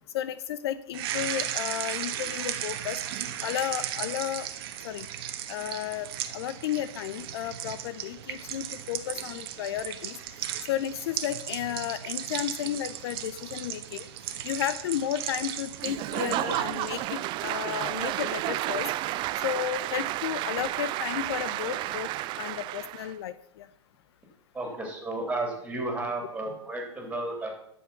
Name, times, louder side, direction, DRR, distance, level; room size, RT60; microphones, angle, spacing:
voice 1, 0.1-3.0 3.4-4.5 4.8-5.1 5.5-6.1 6.3-10.2 10.7-14.1 14.4-18.9 19.4-22.1 22.4-23.7, left 11 dB, 60° left, 15 dB, 0.6 m, -33 dB
sound 1, 0.9-17.1, right 11 dB, 55° right, 1.2 m, -36 dB
Applause / Crowd, 15.8-23.1, right 16 dB, 30° right, 0.4 m, -31 dB
voice 2, 24.5-27.5, right 2 dB, 10° right, 1 dB, 3.5 m, -33 dB
11.0 x 7.2 x 5.8 m, 0.73 s
hypercardioid pair, 115°, 15 cm